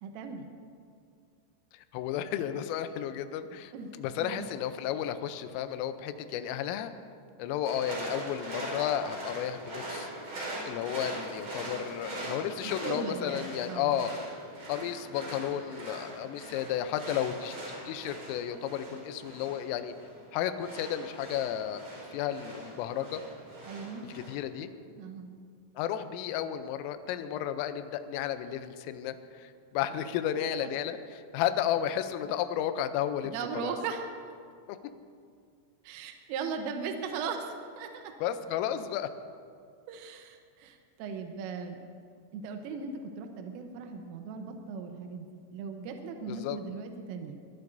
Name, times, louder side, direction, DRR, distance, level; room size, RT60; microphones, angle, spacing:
voice 1, 0.0-0.5 3.7-3.9 4.2-4.5 12.6-14.0 23.7-24.0 25.0-25.3 30.6-30.7 33.2-34.1 35.9-38.1 39.9-41.8 42.3-47.4, right 5 dB, 80° right, 4 dB, 3.5 m, -38 dB
voice 2, 1.7-6.9 7.4-10.1 10.6-14.1 14.7-17.6 17.9-19.9 20.3-21.8 22.1-23.2 24.0-24.7 25.8-33.7 34.7-34.9 38.2-39.1 46.3-46.6, left 10 dB, 85° left, 9 dB, 3.3 m, -33 dB
sound 1, 7.7-24.3, right 1 dB, 35° right, 5.3 m, -41 dB
22.0 x 18.0 x 2.7 m, 2.3 s
omnidirectional pair, 5.9 m